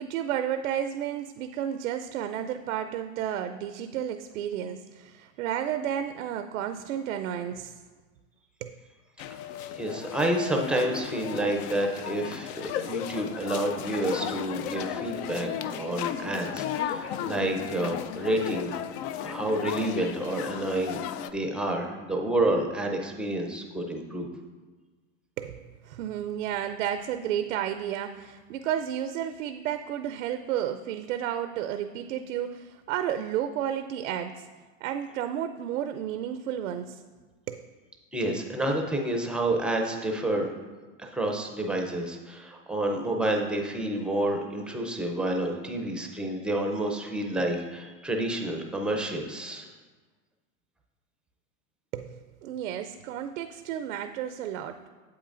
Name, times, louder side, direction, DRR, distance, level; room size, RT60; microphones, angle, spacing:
voice 1, 0.0-7.8 8.6-8.8 25.4-34.5 34.8-37.0 37.5-37.7 51.9-54.9, right 10 dB, 85° right, 8 dB, 0.5 m, -32 dB
sound 1, 9.2-21.3, left 10 dB, 55° left, 0.5 m, -35 dB
voice 2, 9.7-18.8 19.2-24.3 38.1-40.5 41.0-49.7, right 1 dB, 5° right, 2 dB, 0.5 m, -29 dB
8.7 x 7.9 x 2.5 m, 1.3 s
supercardioid pair, 135°, 39 cm